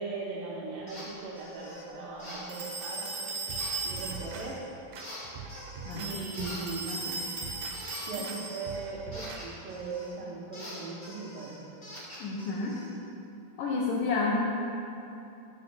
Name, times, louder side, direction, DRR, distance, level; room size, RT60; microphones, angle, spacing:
voice 1, 0.0-3.3 3.8-4.6 5.9-6.9 8.1-11.6, right 4 dB, 75° right, -4 dB, 2.2 m, -39 dB
sound 1, 0.9-1.1 1.4-1.8 2.2-3.1 3.5-4.5 5.0-6.1 6.3-10.2 10.5-12.9, left 1 dB, 40° left, 0.8 m, -45 dB
sound 2, 2.5-4.5 5.9-8.8, right 3 dB, 60° right, 2.2 m, -37 dB
sound 3, 3.5-4.5 4.9-6.1 6.4-6.7 7.2-7.8 8.2-8.4 8.7-9.4 9.8-9.9, right 5 dB, 90° right, 2.7 m, -43 dB
voice 2, 12.2-12.8 13.6-14.4, left 3 dB, 80° left, -2 dB, 1.9 m, -30 dB
9.4 x 4.2 x 5.9 m, 2.8 s
omnidirectional pair, 4.6 m